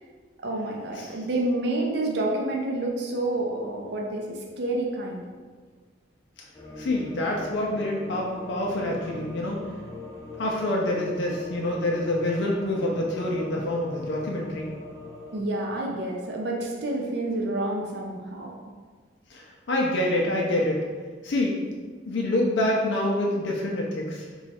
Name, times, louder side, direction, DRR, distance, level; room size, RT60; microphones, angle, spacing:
voice 1, 0.4-5.2 15.3-18.5, right 2 dB, 60° right, 0 dB, 0.4 m, -29 dB
sound 1, 6.5-15.4, left 1 dB, 15° left, 0.5 m, -41 dB
voice 2, 6.8-9.6 10.4-14.7 19.3-20.8 21.2-21.5 22.1-24.2, left 1 dB, 70° left, -2 dB, 0.4 m, -26 dB
3.0 x 2.3 x 4.1 m, 1.5 s
head